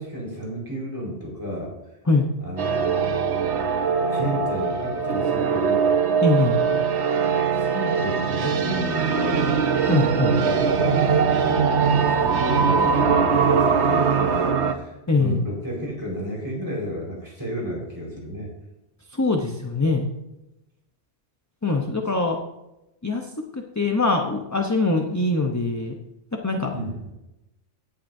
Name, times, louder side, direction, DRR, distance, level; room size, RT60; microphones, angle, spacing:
voice 1, 0.0-1.7 2.4-3.8 4.1-5.9 6.1-6.2 7.2-9.6 10.4-18.5 26.7-27.0, equal, 15° right, -3 dB, 4.8 m, -32 dB
sound 1, 2.6-14.7, right 6 dB, 70° right, 1.2 m, -21 dB
voice 2, 6.2-6.6 9.9-10.3 15.1-15.4 19.2-20.1 21.6-22.4 23.0-23.2 23.8-25.9 26.4-26.7, left 3 dB, 15° left, 2 dB, 0.8 m, -22 dB
17.5 x 11.0 x 2.7 m, 0.94 s
omnidirectional pair, 1.2 m